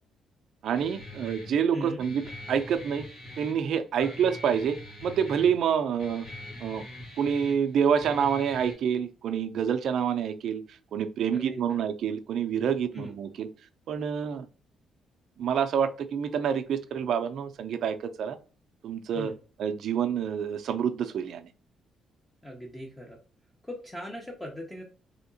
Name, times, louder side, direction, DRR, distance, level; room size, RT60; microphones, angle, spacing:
voice 1, 0.6-3.1 3.4-6.3 6.6-6.8 7.2-10.6 10.9-13.5 13.9-14.5 15.4-18.4 18.8-19.3 19.6-21.5, right 7 dB, 70° right, 8 dB, 0.4 m, -27 dB
Guitar, 0.7-8.7, left 1 dB, 70° left, 1.6 m, -44 dB
voice 2, 1.7-2.0 4.0-4.1 11.3-11.8 12.9-13.1 19.1-19.4 22.4-23.2 23.6-24.8, left 1 dB, 15° left, 0 dB, 0.7 m, -39 dB
3.4 x 2.8 x 2.6 m, 0.36 s
cardioid pair, 90°, 0 cm